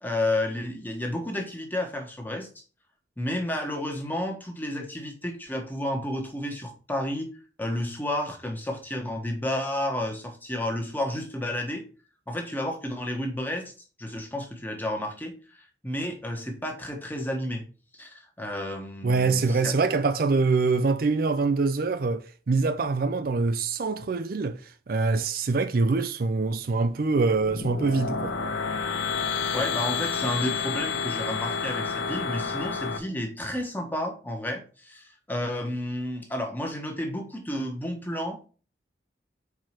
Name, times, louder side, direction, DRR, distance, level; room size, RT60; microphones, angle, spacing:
voice 1, 0.0-2.6 3.2-7.3 7.6-11.8 12.3-13.7 14.0-17.6 17.9-19.7 29.5-38.5, left 1 dB, 10° left, 1.2 m, -31 dB
voice 2, 19.0-24.6 24.9-28.4, right 3 dB, 55° right, 0.4 m, -24 dB
sound 1, 27.3-33.0, left 5 dB, 90° left, 1.0 m, -30 dB
4.7 x 4.6 x 5.8 m
head